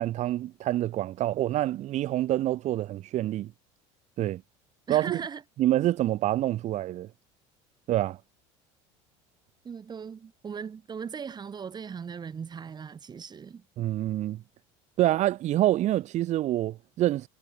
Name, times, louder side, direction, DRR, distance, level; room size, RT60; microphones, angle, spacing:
voice 1, 0.0-3.5 4.2-4.4 4.9-5.2 5.6-7.1 7.9-8.2 13.8-14.4 15.0-17.3, right 14 dB, 50° right, 1.6 m, -26 dB
voice 2, 4.9-5.4 9.6-13.6, right 6 dB, 30° right, 3.6 m, -38 dB
supercardioid pair, 110°, 15 cm